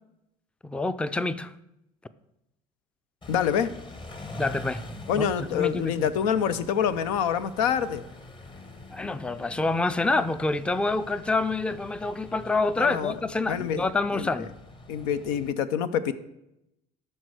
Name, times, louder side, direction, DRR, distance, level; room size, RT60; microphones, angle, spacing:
voice 1, 0.6-1.5 4.3-4.8 5.2-6.1 8.9-14.5, left 3 dB, 5° left, 0.4 m, -27 dB
Car / Idling / Accelerating revving vroom, 3.2-15.5, left 2 dB, 25° left, 1.0 m, -44 dB
voice 2, 3.3-3.7 5.1-8.0 12.8-13.2 13.5-14.3 14.9-16.1, left 8 dB, 80° left, 0.6 m, -26 dB
12.5 x 4.4 x 4.8 m
supercardioid pair, 75°, 19 cm